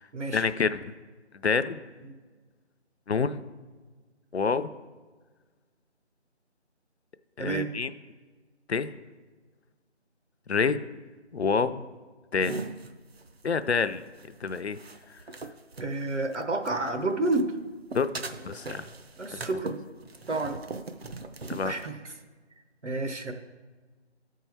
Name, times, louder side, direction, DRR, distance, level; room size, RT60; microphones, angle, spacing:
voice 1, 0.3-0.9 1.4-1.8 3.1-3.4 4.3-4.7 7.4-7.9 8.7-8.9 10.5-10.8 11.3-11.8 12.3-12.5 13.4-14.0 14.4-14.8 17.9-18.1 18.4-18.8 19.3-19.4 21.5-21.7, left 5 dB, 65° left, 12 dB, 0.5 m, -27 dB
voice 2, 7.4-7.7 15.8-17.5 19.2-19.8 20.3-20.6 21.6-22.0 22.8-23.3, right 2 dB, 75° right, 5 dB, 1.1 m, -29 dB
sound 1, 12.4-16.9 17.2-21.9, right 3 dB, 60° right, 0.6 m, -40 dB
12.0 x 4.6 x 4.5 m, 1.4 s
figure-of-eight pair, 175°, 35 cm